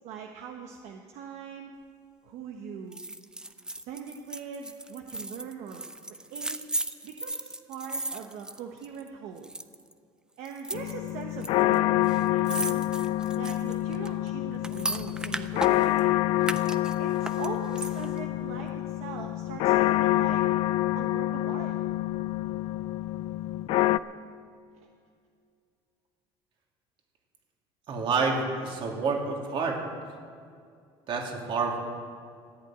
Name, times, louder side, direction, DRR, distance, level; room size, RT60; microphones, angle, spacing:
voice 1, 0.0-1.7 2.2-3.0 3.7-5.9 6.3-6.6 7.0-9.5 10.4-12.8 13.3-16.2 17.0-20.4 21.0-21.8 24.8-24.9, right 7 dB, 65° right, 3 dB, 1.1 m, -41 dB
sound 1, 2.9-9.1 9.4-9.9 10.4-11.5 11.7-11.8 12.0-16.0 16.4-18.2 18.6-18.7, right 2 dB, 5° right, 0.5 m, -36 dB
sound 2, 10.7-24.0, left 15 dB, 55° left, 0.4 m, -27 dB
voice 2, 27.9-29.8 31.1-31.8, right 4 dB, 45° right, 0 dB, 2.8 m, -28 dB
14.0 x 8.6 x 9.0 m, 2.3 s
cardioid pair, 140°, 12 cm